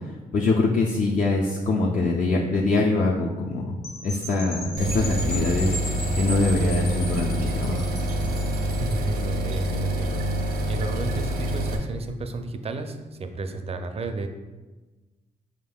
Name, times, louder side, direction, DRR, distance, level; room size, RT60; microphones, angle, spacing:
voice 1, 0.3-3.8 4.0-7.8, left 3 dB, 55° left, -2 dB, 0.5 m, -24 dB
sound 1, 3.8-9.1, left 1 dB, 85° left, 1.1 m, -37 dB
sound 2, 4.8-11.8, equal, 75° right, 0.6 m, -26 dB
voice 2, 8.8-10.2 10.7-14.3, right 3 dB, 40° right, 7 dB, 0.5 m, -32 dB
4.7 x 3.5 x 2.3 m, 1.2 s
supercardioid pair, 60°, 16 cm